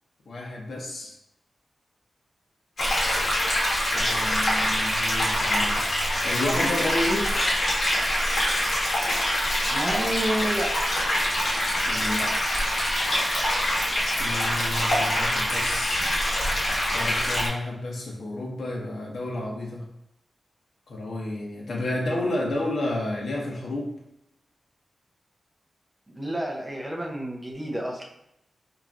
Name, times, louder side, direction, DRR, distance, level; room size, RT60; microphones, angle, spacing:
voice 1, 0.3-1.2 3.9-5.9 6.2-7.4 11.9-12.3 14.2-16.1 16.9-19.9 20.9-24.0, left 1 dB, 75° left, -2 dB, 1.0 m, -31 dB
sound 1, 2.8-17.5, left 1 dB, 55° left, 1.4 m, -25 dB
voice 2, 9.7-10.7 16.0-16.1 26.2-28.0, right 1 dB, 10° right, -2 dB, 0.7 m, -29 dB
4.8 x 2.9 x 2.5 m, 0.81 s
wide cardioid pair, 130°, 0 cm